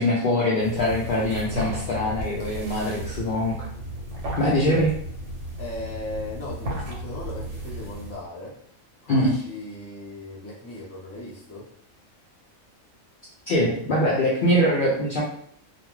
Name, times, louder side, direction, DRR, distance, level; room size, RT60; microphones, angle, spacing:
voice 1, 0.0-3.7 4.4-4.9 9.1-9.3 13.5-15.2, equal, 70° left, -4 dB, 0.4 m, -23 dB
sound 1, 0.6-8.3, equal, 60° right, 1.1 m, -34 dB
voice 2, 5.6-8.6 9.0-11.7, left 2 dB, 15° left, -6 dB, 0.5 m, -37 dB
2.5 x 2.3 x 3.0 m, 0.64 s
omnidirectional pair, 1.5 m